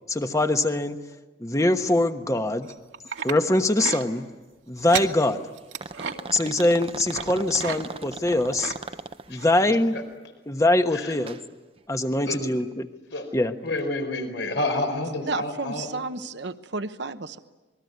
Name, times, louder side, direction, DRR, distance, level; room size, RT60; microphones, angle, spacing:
voice 1, 0.1-1.0 1.4-2.7 3.2-4.2 4.7-5.4 6.3-8.7 9.3-10.0 10.5-11.4 11.9-12.9 13.3-13.5, left 1 dB, 15° left, 7 dB, 1.2 m, -23 dB
sound 1, 2.6-3.4 3.8-4.0 4.8-5.1 5.6-6.1 7.1-7.3 7.6-7.8 8.1-8.8 9.4-9.5 10.0-10.1, right 6 dB, 90° right, 2.1 m, -32 dB
sound 2, 4.9-5.2 5.8-9.5 11.1-11.4 11.8-11.9 12.7-12.8, right 4 dB, 30° right, 0.8 m, -37 dB
voice 2, 9.3-10.0 10.9-11.1 12.1-12.5 13.1-13.2 13.6-15.9, left 2 dB, 75° left, 5 dB, 4.6 m, -30 dB
voice 3, 15.2-17.4, right 3 dB, 65° right, 10 dB, 1.0 m, -32 dB
27.5 x 21.0 x 9.5 m, 1.2 s
head